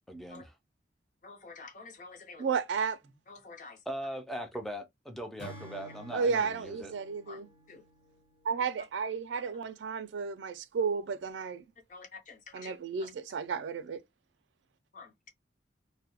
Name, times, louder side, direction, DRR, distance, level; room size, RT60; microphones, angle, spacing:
voice 1, 0.1-0.5 3.9-6.9, equal, ahead, 0.4 m, -40 dB
voice 2, 1.2-2.5 3.3-3.8 7.3-7.4 7.7-7.8 11.9-12.8 14.9-15.3, left 4 dB, 45° left, 0.6 m, -48 dB
voice 3, 2.4-3.0 6.1-7.5 8.5-11.6 12.5-14.0, right 5 dB, 80° right, 0.3 m, -32 dB
Acoustic guitar / Strum, 5.4-8.8, equal, 80° left, 1.0 m, -51 dB
2.2 x 2.1 x 2.7 m
head